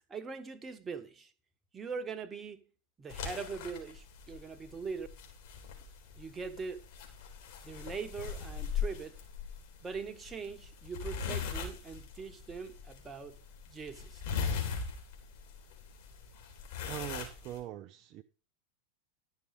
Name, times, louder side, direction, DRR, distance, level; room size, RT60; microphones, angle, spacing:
voice 1, 0.1-1.3 1.7-2.7 3.0-5.1 6.1-6.9 7.6-9.2 9.8-14.2, right 5 dB, 20° right, 1.3 m, -42 dB
sound 1, 3.1-17.6, left 6 dB, 50° left, 3.8 m, -40 dB
voice 2, 16.9-18.2, right 13 dB, 40° right, 0.6 m, -42 dB
12.0 x 6.4 x 5.4 m
figure-of-eight pair, 90°, 0 cm